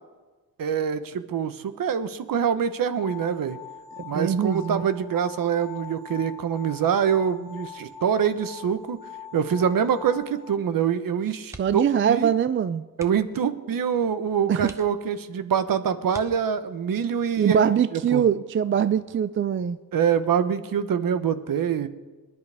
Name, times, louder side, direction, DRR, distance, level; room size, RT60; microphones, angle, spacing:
voice 1, 0.6-3.6 4.0-9.0 9.3-12.3 13.0-17.6 17.9-18.2 19.9-21.9, right 7 dB, 60° right, 11 dB, 1.0 m, -25 dB
sound 1, 2.9-10.6, left 7 dB, 80° left, 2.4 m, -43 dB
voice 2, 4.0-4.8 11.6-12.8 14.5-14.7 17.4-19.8, right 8 dB, 35° right, 13 dB, 0.4 m, -22 dB
sound 2, 11.5-12.0 12.3-12.5 12.9-13.4 14.0-14.1 14.6-15.4 16.1-16.9 18.4-18.7 19.1-19.2, right 1 dB, 10° right, 1.0 m, -45 dB
26.0 x 11.0 x 3.5 m, 1.3 s
wide cardioid pair, 125°, 38 cm